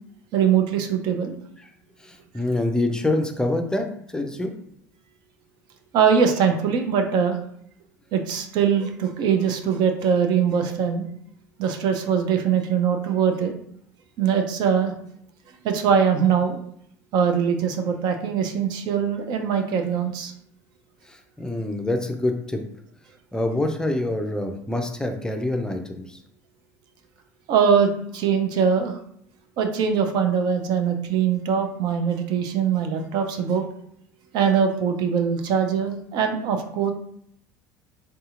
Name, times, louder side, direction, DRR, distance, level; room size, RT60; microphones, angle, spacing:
voice 1, 0.3-1.4 5.9-7.4 8.1-11.1 11.6-13.5 14.2-14.9 15.6-16.6 17.1-20.3 27.5-29.0 29.6-33.6 34.3-36.9, right 7 dB, 55° right, 5 dB, 0.5 m, -22 dB
voice 2, 2.0-3.9 4.1-4.5 21.1-22.6 23.3-26.2, left 1 dB, 10° left, 4 dB, 0.5 m, -26 dB
3.6 x 2.7 x 2.4 m, 0.68 s
hypercardioid pair, 70°, 9 cm